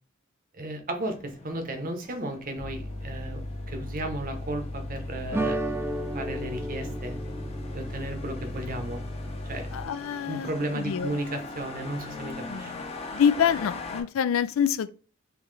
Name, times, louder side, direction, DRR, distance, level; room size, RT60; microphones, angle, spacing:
voice 1, 0.5-5.6 6.1-7.2 7.7-9.0 9.4-9.7 10.3-12.7, right 1 dB, 45° right, 0.8 m, -34 dB
sound 1, 1.0-14.0, left 3 dB, 30° left, 0.7 m, -42 dB
sound 2, 2.6-9.9, left 1 dB, 60° left, 1.0 m, -37 dB
sound 3, 5.3-10.2, right 1 dB, 10° right, 0.4 m, -35 dB
voice 2, 9.7-11.2 12.4-12.8 13.1-14.9, left 8 dB, 90° left, 0.4 m, -26 dB
3.7 x 3.0 x 3.2 m
head